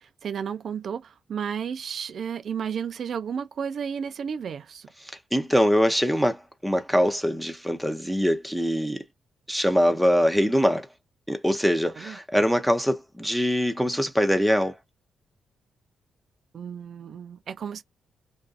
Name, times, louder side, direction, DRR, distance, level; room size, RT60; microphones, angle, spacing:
voice 1, 0.2-4.9 12.0-12.1 16.5-17.8, right 7 dB, 65° right, 0.3 m, -32 dB
voice 2, 5.3-9.0 9.5-10.9 11.3-14.7, equal, ahead, 0.6 m, -23 dB
2.5 x 2.3 x 2.4 m
supercardioid pair, 60°, 0 cm